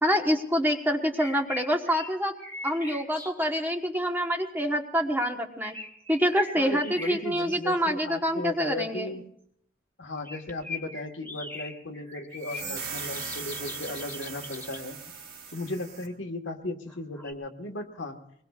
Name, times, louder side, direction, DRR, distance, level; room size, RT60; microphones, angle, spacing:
voice 1, 0.0-2.3 2.6-5.7 6.1-9.1, equal, 10° right, 4 dB, 1.1 m, -26 dB
sound 1, 1.0-3.6 5.6-7.8 10.2-14.8 16.9-17.3, left 3 dB, 10° left, 1.8 m, -41 dB
voice 2, 6.6-9.2 10.0-15.0 15.5-18.2, left 1 dB, 75° left, 4 dB, 1.4 m, -36 dB
sound 2, 12.4-16.1, right 5 dB, 60° right, 3.0 m, -39 dB
24.5 x 20.5 x 2.4 m, 0.70 s
head